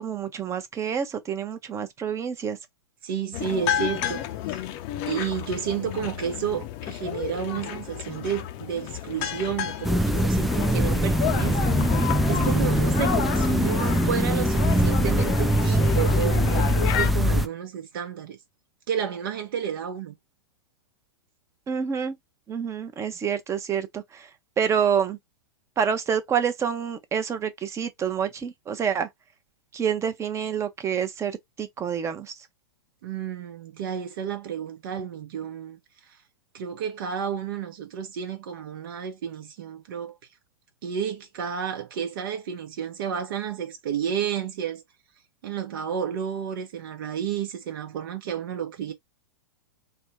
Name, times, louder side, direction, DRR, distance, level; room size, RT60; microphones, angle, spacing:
voice 1, 0.0-2.6 21.7-22.2 22.5-24.3 24.6-25.2 25.8-29.1 29.7-32.3, right 7 dB, 20° right, 0.8 m, -27 dB
voice 2, 3.0-4.6 5.1-11.8 12.3-18.4 18.9-20.1 33.0-35.8 36.5-40.1 40.8-44.8 45.4-48.9, right 8 dB, 55° right, 0.9 m, -31 dB
sound 1, 3.3-17.1, left 11 dB, 40° left, 0.6 m, -31 dB
sound 2, 9.8-17.5, equal, ahead, 0.4 m, -22 dB
3.5 x 2.2 x 4.3 m
hypercardioid pair, 105°, 13 cm